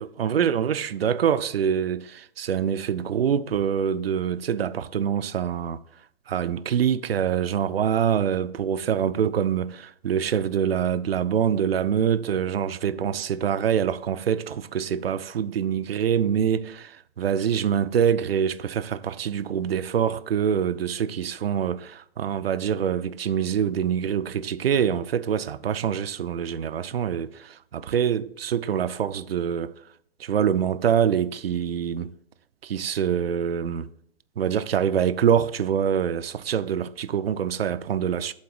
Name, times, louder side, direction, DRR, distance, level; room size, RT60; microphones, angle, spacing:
voice 1, 0.0-5.8 6.3-29.8 30.2-32.1 32.6-33.9 34.4-38.3, right 8 dB, 75° right, 0.5 m, -25 dB
7.2 x 4.2 x 4.7 m
figure-of-eight pair, 115°, 31 cm